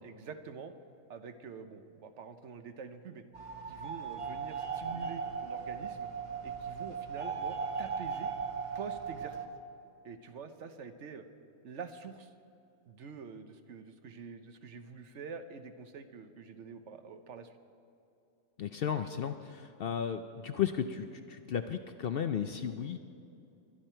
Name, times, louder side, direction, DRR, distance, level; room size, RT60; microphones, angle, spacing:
voice 1, 0.0-0.7 1.1-3.2 3.7-6.1 6.4-8.3 8.7-9.5 10.0-11.3 11.6-12.3 12.9-17.5, right 5 dB, 65° right, 9 dB, 1.1 m, -46 dB
sound 1, 3.3-9.5, right 6 dB, 25° right, 1.0 m, -38 dB
voice 2, 18.6-23.0, left 8 dB, 60° left, 8 dB, 0.6 m, -34 dB
22.5 x 11.0 x 4.4 m, 2.7 s
omnidirectional pair, 1.4 m